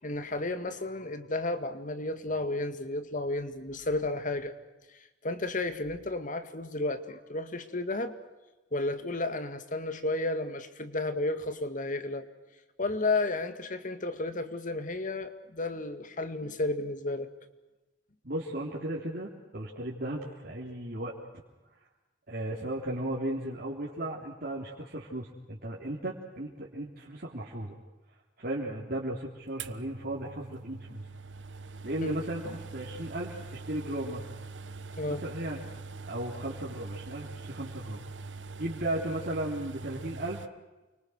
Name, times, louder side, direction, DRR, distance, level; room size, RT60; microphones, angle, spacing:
voice 1, 0.0-4.5 5.2-8.2 8.7-12.2 12.8-17.3 32.0-32.2 35.0-35.2, left 2 dB, 45° left, 10 dB, 2.1 m, -32 dB
voice 2, 18.2-21.1 22.3-27.8 28.4-31.0 31.8-34.2 35.1-35.6 36.1-38.0 38.6-40.4, right 1 dB, 55° right, -4 dB, 3.6 m, -35 dB
sound 1, 29.6-40.5, right 4 dB, 80° right, 1.2 m, -43 dB
29.5 x 25.0 x 6.5 m, 1.1 s
head